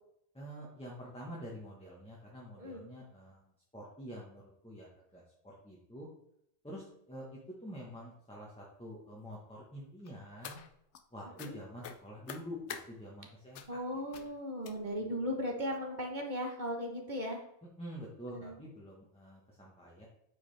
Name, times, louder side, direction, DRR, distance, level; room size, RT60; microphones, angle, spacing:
voice 1, 0.3-6.1 6.6-10.6 11.1-13.8 14.1-14.3 15.0-15.1 17.8-20.1, equal, 5° left, -4 dB, 1.2 m, -47 dB
sound 1, 10.1-11.0 11.4-11.5 11.8-12.9 13.5-13.8 14.1-14.3 14.6-15.1 15.7-15.8 16.2-16.4 16.7-16.8, left 7 dB, 80° left, 1.0 m, -47 dB
voice 2, 13.7-17.4 18.3-18.5, equal, 45° right, 2 dB, 1.3 m, -37 dB
8.6 x 4.9 x 3.4 m, 0.77 s
omnidirectional pair, 1.2 m